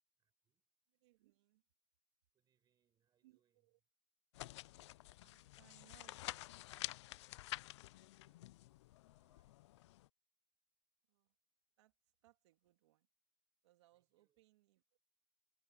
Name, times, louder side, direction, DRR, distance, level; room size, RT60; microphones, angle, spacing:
voice 1, 0.2-0.8 2.3-3.7 7.6-8.7 9.0-9.7 13.9-14.4, right 10 dB, 25° right, 7.1 m, -86 dB
voice 2, 0.9-1.6 3.2-3.8 5.2-6.7 11.1-11.3 11.8-13.1 13.6-15.0, right 18 dB, 75° right, 2.6 m, -71 dB
sound 1, 4.3-10.1, left 17 dB, 75° left, 0.5 m, -50 dB
supercardioid pair, 140°, 15 cm